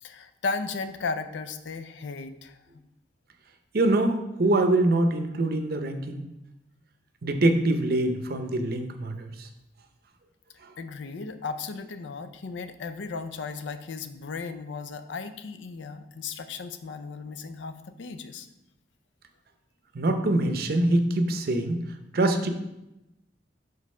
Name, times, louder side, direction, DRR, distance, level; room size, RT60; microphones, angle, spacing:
voice 1, 0.0-2.8 10.8-18.5, left 4 dB, 85° left, 10 dB, 0.5 m, -35 dB
voice 2, 3.7-6.2 7.2-9.5 19.9-21.8 22.1-22.5, right 2 dB, 55° right, 6 dB, 0.6 m, -24 dB
5.2 x 4.0 x 5.4 m, 0.92 s
head